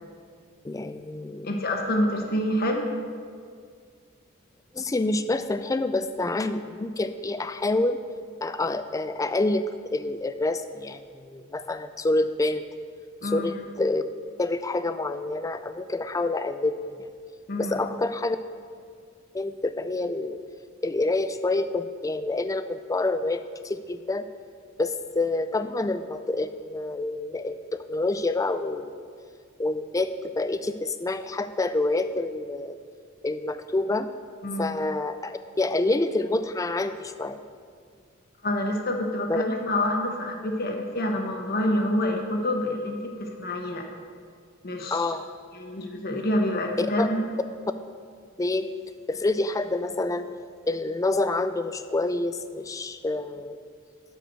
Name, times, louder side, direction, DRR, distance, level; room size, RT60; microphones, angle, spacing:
voice 1, 0.6-1.5 4.7-8.0 8.4-12.6 13.2-14.0 14.4-17.0 17.6-18.4 19.3-20.4 20.8-24.2 24.8-29.1 29.6-30.1 30.4-32.8 33.2-34.1 34.6-37.4 39.3-39.4 44.9-45.3 46.8-47.1 48.4-48.7 49.1-50.3 50.7-53.6, left 2 dB, 15° left, 11 dB, 0.3 m, -27 dB
voice 2, 1.4-2.8 13.2-13.5 17.5-17.8 34.4-34.7 38.4-43.8 44.6-45.1 45.5-47.2, left 1 dB, 45° left, 2 dB, 1.2 m, -27 dB
12.5 x 4.8 x 6.7 m, 2.1 s
head